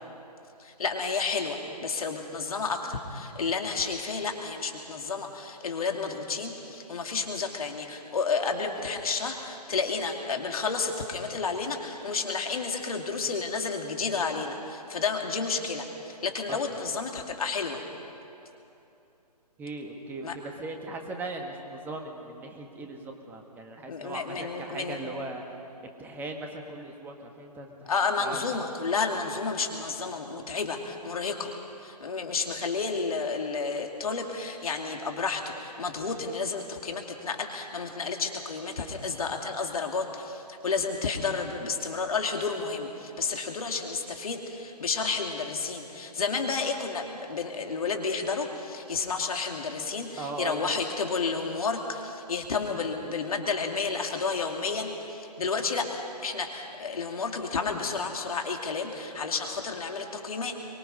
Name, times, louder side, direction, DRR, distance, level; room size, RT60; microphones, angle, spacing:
voice 1, 0.6-17.8 20.2-20.3 23.9-25.0 27.9-31.5 31.8-60.5, left 4 dB, 60° left, 3 dB, 2.6 m, -31 dB
voice 2, 19.6-25.4 25.8-27.9 28.2-28.5 50.2-50.7, right 2 dB, 10° right, 3 dB, 1.5 m, -38 dB
23.5 x 23.5 x 5.4 m, 2.9 s
figure-of-eight pair, 140°, 21 cm